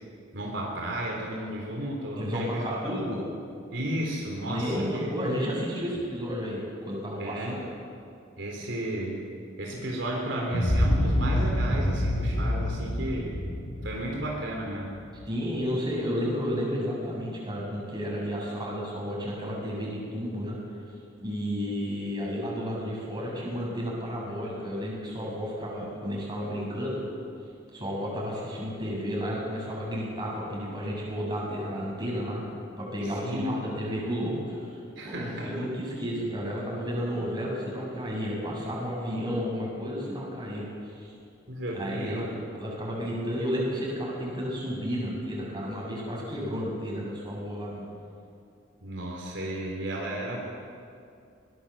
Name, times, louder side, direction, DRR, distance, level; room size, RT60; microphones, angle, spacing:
voice 1, 0.3-3.0 3.7-5.1 7.2-7.6 8.4-9.2 9.6-13.4 13.8-15.0 33.0-33.5 34.9-35.5 41.5-42.3 48.8-50.4, right 1 dB, 75° right, -1 dB, 3.8 m, -33 dB
voice 2, 2.2-3.2 4.4-7.6 15.3-20.6 21.2-27.0 27.7-32.5 32.8-34.8 35.0-41.1 41.7-42.3 42.6-47.8, equal, 25° right, -4 dB, 7.6 m, -32 dB
sound 1, 10.5-15.3, left 1 dB, 85° left, 3.5 m, -27 dB
21.5 x 20.0 x 7.4 m, 2.4 s
head